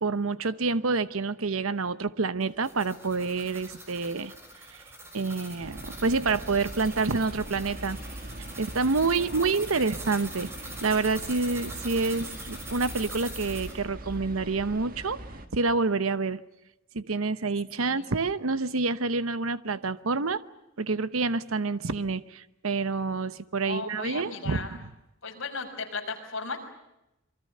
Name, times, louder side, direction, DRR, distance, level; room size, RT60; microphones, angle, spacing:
voice 1, 0.0-4.3 4.7-4.8 5.1-8.0 8.6-10.5 10.8-15.2 15.5-16.4 16.9-20.4 20.8-24.7, right 4 dB, 90° right, 0.9 m, -28 dB
sound 1, 2.4-13.8, right 1 dB, 10° right, 6.2 m, -43 dB
sound 2, 5.6-15.5, right 1 dB, 45° right, 2.2 m, -41 dB
voice 2, 9.1-9.9 17.8-18.1 23.7-24.8 25.2-26.6, left 4 dB, 65° left, 6.1 m, -37 dB
27.0 x 24.0 x 6.7 m
head